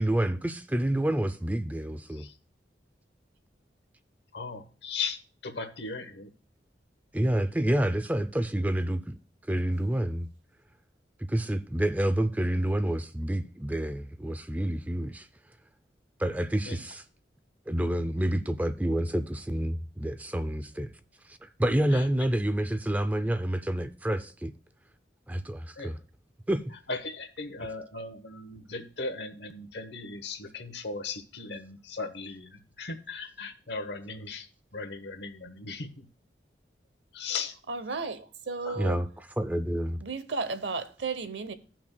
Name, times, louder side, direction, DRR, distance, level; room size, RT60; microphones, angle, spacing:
voice 1, 0.0-2.3 7.1-9.2 9.5-10.3 11.3-15.3 16.2-17.0 17.7-20.9 21.4-24.5 25.3-26.0 26.5-26.6 38.8-39.1 39.4-40.0, right 1 dB, 10° right, 0.4 m, -28 dB
voice 2, 4.3-5.2 5.4-6.3 16.6-16.8 21.9-22.0 25.8-25.9 26.9-34.5 34.7-36.1 37.1-37.5 38.6-38.9, left 4 dB, 75° left, 1.0 m, -37 dB
voice 3, 37.7-39.0 40.0-41.5, right 4 dB, 80° right, 0.8 m, -34 dB
17.0 x 6.0 x 2.2 m
head